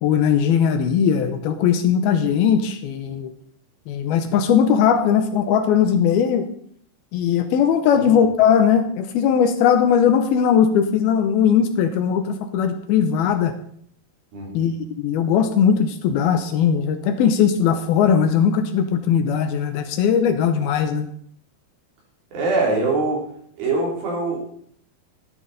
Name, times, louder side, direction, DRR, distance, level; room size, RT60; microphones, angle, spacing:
voice 1, 0.0-3.3 3.9-6.5 7.1-13.5 14.5-21.1, left 7 dB, 80° left, 8 dB, 2.5 m, -19 dB
voice 2, 14.3-14.6 22.3-23.3 23.6-24.4, right 3 dB, 65° right, -2 dB, 4.8 m, -23 dB
13.0 x 11.0 x 4.1 m, 0.64 s
omnidirectional pair, 4.7 m